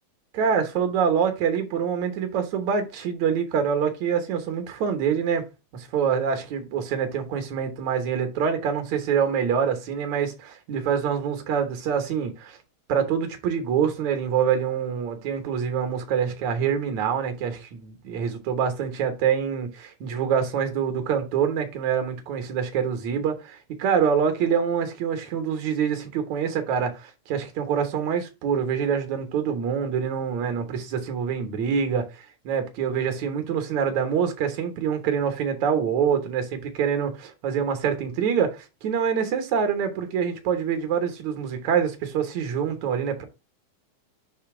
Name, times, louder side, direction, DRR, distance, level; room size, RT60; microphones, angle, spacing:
voice 1, 0.3-5.4 5.7-12.6 12.9-43.2, right 7 dB, 70° right, 2.2 m, -25 dB
6.8 x 2.8 x 5.8 m
omnidirectional pair, 3.6 m